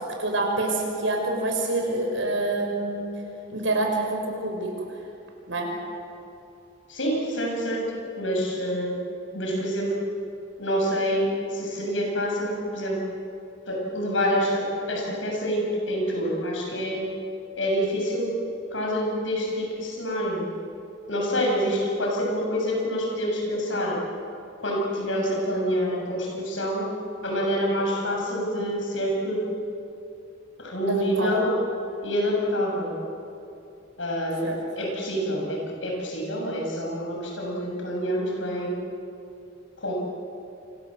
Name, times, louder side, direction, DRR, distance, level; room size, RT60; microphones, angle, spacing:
voice 1, 0.2-3.1 3.5-4.7 5.5-5.7 30.9-31.3 34.4-34.6, right 2 dB, 90° right, 1 dB, 6.6 m, -26 dB
voice 2, 6.9-9.0 9.3-10.0 10.6-13.0 13.7-17.1 17.6-18.3 18.7-20.5 21.1-24.0 24.6-26.9 27.2-29.5 30.6-31.5 32.0-32.9 34.0-34.5 34.8-38.8 39.8-39.9, equal, 80° left, -1 dB, 7.7 m, -27 dB
28.5 x 26.0 x 7.9 m, 2.7 s
head